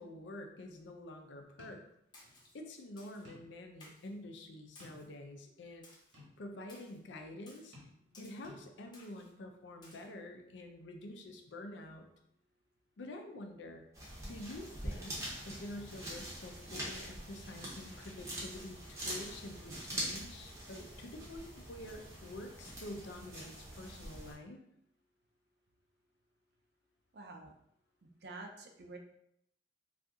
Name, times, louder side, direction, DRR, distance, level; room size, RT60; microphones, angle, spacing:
voice 1, 0.0-1.8 2.5-5.9 6.4-7.8 8.2-12.1 13.0-13.9 14.2-15.2 15.4-24.6, left 1 dB, 70° left, 4 dB, 0.4 m, -48 dB
sound 1, 1.6-1.9 2.2-2.4 3.2-3.6 4.1-4.2 4.8-5.3 6.1-6.4 7.7-8.2 8.4-8.6, left 1 dB, 80° right, 1.2 m, -56 dB
Splash splatter, 2.1-2.5 3.0-3.3 3.8-4.1 4.8-5.1 5.8-6.2 6.7-7.0 7.5-7.7 8.1-8.5 8.9-9.3 9.8-10.1, left 2 dB, 25° left, 0.6 m, -59 dB
sound 2, 13.9-24.3, right 1 dB, 15° right, 0.7 m, -44 dB
voice 2, 27.1-27.5 28.0-29.0, right 3 dB, 55° right, 2 dB, 0.4 m, -49 dB
2.7 x 2.4 x 3.5 m, 0.76 s
head